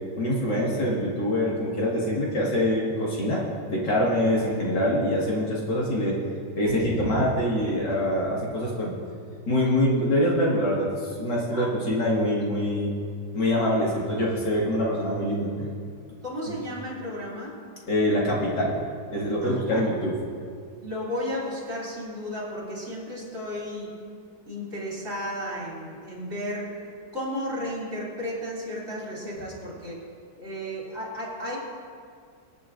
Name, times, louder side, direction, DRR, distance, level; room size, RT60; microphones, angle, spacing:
voice 1, 0.2-6.2 6.6-9.0 9.5-12.9 13.3-15.7 16.5-16.6 17.9-18.8 19.1-20.2, equal, 75° left, -4 dB, 2.6 m, -25 dB
voice 2, 16.2-17.6 19.4-19.8 20.8-23.9 24.5-26.8 27.1-30.0 30.4-31.6, equal, 45° right, -5 dB, 3.4 m, -33 dB
25.0 x 8.4 x 2.6 m, 2.2 s
omnidirectional pair, 1.9 m